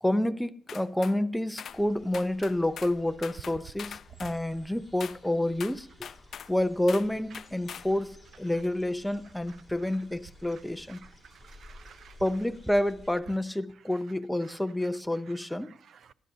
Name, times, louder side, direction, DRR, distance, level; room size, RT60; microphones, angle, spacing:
voice 1, 0.0-6.1 6.5-11.0 12.2-15.7, left 1 dB, 5° left, 0.7 m, -29 dB
sound 1, 0.7-1.2 1.6-1.8 2.1-3.0 3.2-4.4 5.0-5.2 5.6-6.5 6.9-7.1 7.3-7.9, left 8 dB, 65° left, 0.5 m, -42 dB
sound 2, 1.7-13.1, left 1 dB, 10° right, 3.8 m, -54 dB
voice 2, 10.9-12.1 13.3-13.4 13.9-14.0 14.4-16.1, right 8 dB, 65° right, 0.6 m, -55 dB
28.5 x 11.0 x 2.8 m
cardioid pair, 100°, 0 cm